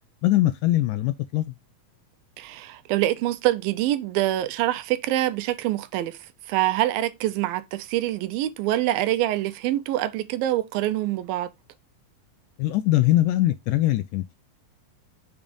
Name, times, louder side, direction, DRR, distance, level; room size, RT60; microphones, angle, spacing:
voice 1, 0.2-1.6 12.6-14.4, left 15 dB, 80° left, 1.9 m, -22 dB
voice 2, 2.4-6.2 6.5-11.5, right 14 dB, 80° right, 2.4 m, -25 dB
7.1 x 3.3 x 5.1 m
omnidirectional pair, 4.2 m